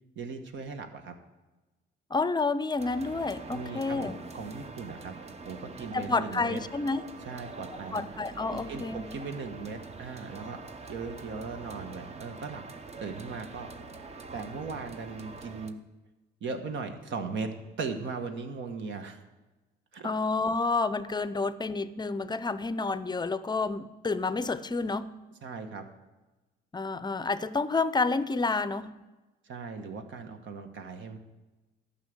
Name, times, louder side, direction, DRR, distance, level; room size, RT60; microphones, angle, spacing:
voice 1, 0.1-1.1 3.5-6.6 7.2-8.1 8.5-10.6 10.8-13.7 14.3-15.8 16.4-17.5 17.8-19.2 19.9-20.1 25.4-25.9 29.5-31.2, right 4 dB, 70° right, 6 dB, 1.3 m, -38 dB
voice 2, 2.1-4.2 5.9-7.1 7.9-9.0 20.0-25.2 26.7-28.9, left 3 dB, 20° left, 14 dB, 0.5 m, -29 dB
sound 1, 2.8-15.7, right 3 dB, 30° right, 0.8 m, -45 dB
12.0 x 5.6 x 8.0 m, 1.2 s
cardioid pair, 90°, 20 cm